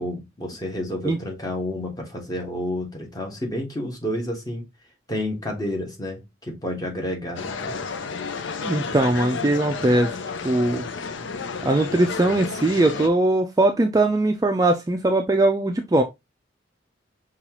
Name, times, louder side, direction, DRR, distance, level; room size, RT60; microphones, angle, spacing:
voice 1, 0.0-4.7 5.1-7.8 9.7-9.8, left 1 dB, 20° left, 1.0 m, -30 dB
sound 1, 7.4-13.1, left 5 dB, 85° left, 0.5 m, -31 dB
voice 2, 8.6-10.1 10.4-10.8 11.6-16.0, right 2 dB, 20° right, 0.3 m, -20 dB
5.3 x 2.4 x 2.9 m
head